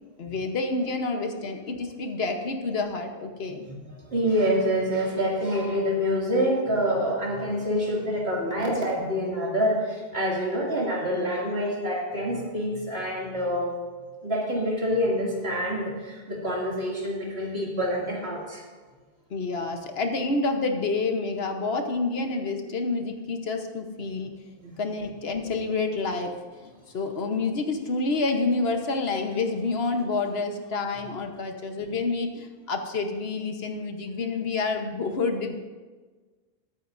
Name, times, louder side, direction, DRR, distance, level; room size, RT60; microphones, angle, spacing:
voice 1, 0.2-3.6 19.3-24.3 24.8-26.3 26.6-35.6, left 3 dB, 80° left, 5 dB, 1.3 m, -28 dB
voice 2, 3.5-13.8 14.2-18.6 24.6-24.8, equal, 85° right, -3 dB, 2.8 m, -27 dB
21.5 x 8.7 x 2.6 m, 1.4 s
omnidirectional pair, 1.0 m